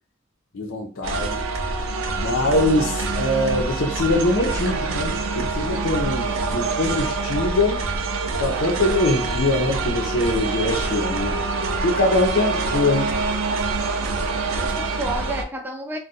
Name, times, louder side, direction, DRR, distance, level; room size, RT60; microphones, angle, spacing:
voice 1, 0.5-1.4 2.2-7.8 8.4-11.4 11.8-13.1, left 2 dB, 85° left, 0.8 m, -23 dB
sound 1, 1.0-15.4, right 3 dB, 85° right, 0.5 m, -25 dB
voice 2, 14.6-16.0, right 1 dB, 10° right, 0.4 m, -31 dB
2.4 x 2.3 x 4.0 m
head